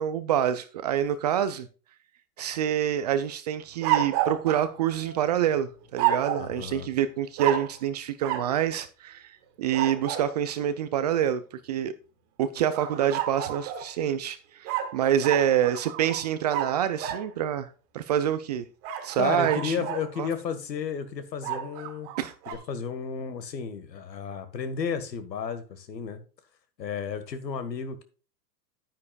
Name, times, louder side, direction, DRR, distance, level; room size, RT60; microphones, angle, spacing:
voice 1, 0.0-1.7 2.4-11.9 12.4-17.7 17.9-18.7 19.0-19.9 20.2-20.3 22.2-22.3, right 10 dB, 30° right, 0.3 m, -27 dB
sound 1, 3.8-5.4 6.0-6.5 7.4-7.8 8.2-8.5 9.7-10.3 12.7-13.9 14.6-17.3 18.8-20.1 21.4-22.6, right 11 dB, 45° right, 2.0 m, -30 dB
voice 2, 6.4-6.9 19.2-22.1 22.5-26.2 26.8-28.0, left 6 dB, 80° left, 1.7 m, -33 dB
9.8 x 9.5 x 2.3 m
hypercardioid pair, 115°, 49 cm